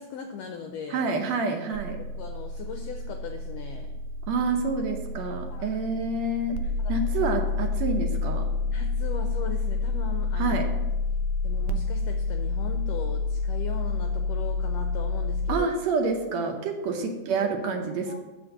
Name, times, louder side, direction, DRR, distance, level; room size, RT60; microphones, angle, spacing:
voice 1, 0.0-1.0 2.0-4.0 5.5-5.8 6.8-6.9 8.7-10.6 11.4-15.7 17.3-17.5 18.1-18.2, left 6 dB, 80° left, 4 dB, 1.4 m, -39 dB
voice 2, 0.9-2.0 4.3-6.6 6.9-8.5 10.4-10.7 15.5-18.2, right 3 dB, 70° right, 3 dB, 1.9 m, -28 dB
sound 1, 1.7-15.6, left 3 dB, 90° right, 2.1 m, -29 dB
6.9 x 6.1 x 6.7 m, 1.1 s
omnidirectional pair, 3.5 m